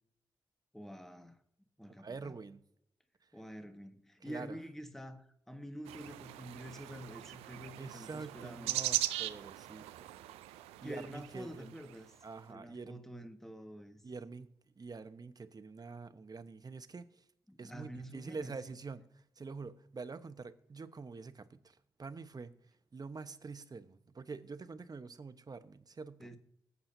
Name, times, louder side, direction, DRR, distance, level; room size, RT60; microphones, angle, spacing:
voice 1, 0.7-1.4 1.8-2.3 3.3-8.7 10.8-12.1 12.5-14.0 17.5-18.8 26.2-26.4, equal, 5° left, 1.6 m, -47 dB
voice 2, 2.0-2.6 4.2-4.6 7.8-10.1 10.8-11.8 12.2-13.0 14.0-14.5 14.8-17.2 17.6-22.5 22.9-26.3, right 4 dB, 40° right, 1.1 m, -46 dB
sound 1, 5.9-12.1, right 15 dB, 85° right, 0.5 m, -40 dB
20.0 x 8.5 x 2.7 m
hypercardioid pair, 40°, 10 cm